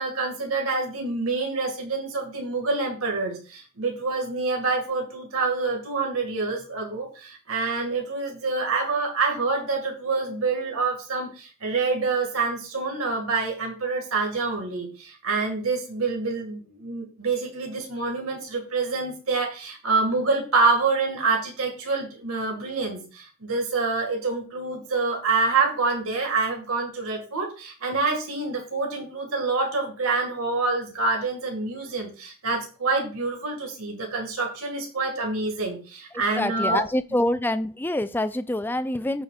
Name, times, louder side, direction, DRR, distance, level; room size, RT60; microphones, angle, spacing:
voice 1, 0.0-36.8, right 3 dB, 90° right, 2.0 m, -27 dB
voice 2, 36.4-39.2, left 1 dB, 10° left, 0.3 m, -26 dB
14.5 x 5.1 x 2.4 m
head